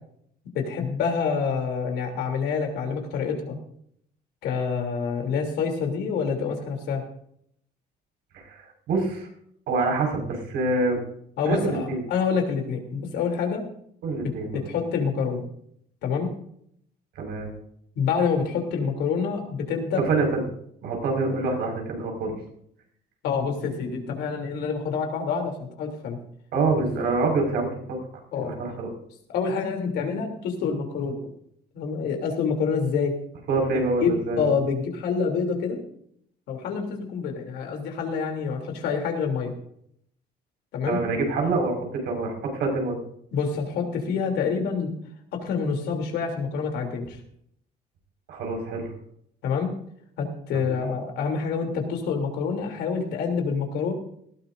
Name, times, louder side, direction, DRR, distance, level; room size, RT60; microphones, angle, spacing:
voice 1, 0.5-3.6 4.4-7.0 11.4-13.6 14.2-15.4 16.0-16.3 18.0-20.0 23.2-26.2 28.3-28.5 29.3-31.2 31.7-33.1 34.0-35.8 36.5-39.5 40.7-41.0 43.3-44.9 45.3-47.2 49.4-49.7 50.2-53.9, left 5 dB, 80° left, 3 dB, 3.2 m, -27 dB
voice 2, 8.3-9.3 9.7-11.0 11.4-12.0 14.0-14.6 17.2-17.5 20.1-20.4 20.8-22.3 26.5-28.0 28.3-28.9 33.5-34.5 40.9-43.0 48.3-48.9 50.5-50.7, right 3 dB, 80° right, 1 dB, 5.3 m, -26 dB
19.0 x 14.0 x 2.7 m, 0.68 s
cardioid pair, 110°, 17 cm